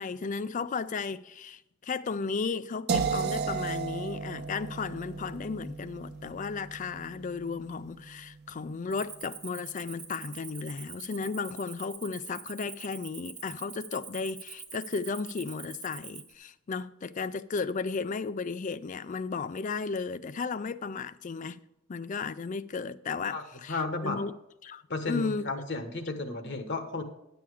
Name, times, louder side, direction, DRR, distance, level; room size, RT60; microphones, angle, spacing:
voice 1, 0.0-21.6 21.9-24.3 24.6-25.5, left 4 dB, 35° left, 0.4 m, -34 dB
sound 1, 2.9-8.8, right 5 dB, 50° right, 0.9 m, -35 dB
Cricket, 8.9-16.3, right 6 dB, 20° right, 1.0 m, -45 dB
voice 2, 23.7-24.2 24.9-27.0, left 3 dB, 55° left, 1.2 m, -33 dB
10.0 x 7.1 x 4.8 m
head